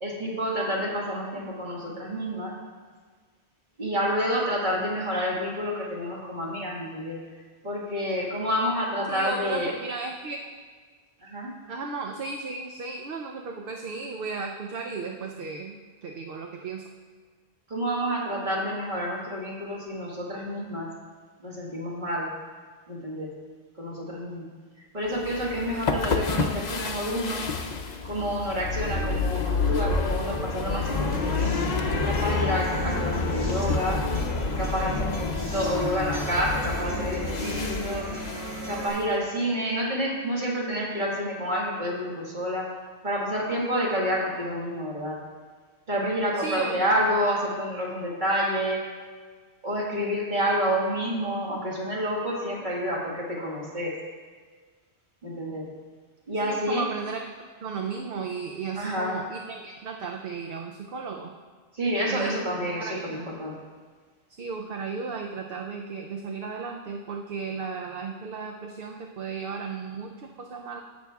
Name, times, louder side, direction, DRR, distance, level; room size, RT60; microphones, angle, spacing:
voice 1, 0.0-2.6 3.8-7.2 7.6-9.7 11.2-11.5 17.7-20.9 21.4-22.3 22.9-23.3 23.8-24.5 24.9-27.4 28.0-31.7 32.1-34.0 34.6-38.1 38.7-42.7 43.0-45.2 45.9-48.8 49.6-54.0 55.2-55.7 56.3-56.9 58.8-59.2 61.7-63.6, equal, 50° right, -4 dB, 1.8 m, -29 dB
voice 2, 9.1-10.4 11.7-15.8 16.0-16.9 46.4-46.8 56.4-57.2 57.6-61.3 62.1-63.3 64.4-70.8, right 4 dB, 65° right, 2 dB, 0.8 m, -34 dB
sound 1, 25.2-39.0, left 4 dB, 50° left, 0.7 m, -29 dB
sound 2, 30.9-38.9, right 1 dB, 90° right, 1.7 m, -36 dB
16.0 x 6.1 x 2.3 m, 1.6 s
omnidirectional pair, 1.1 m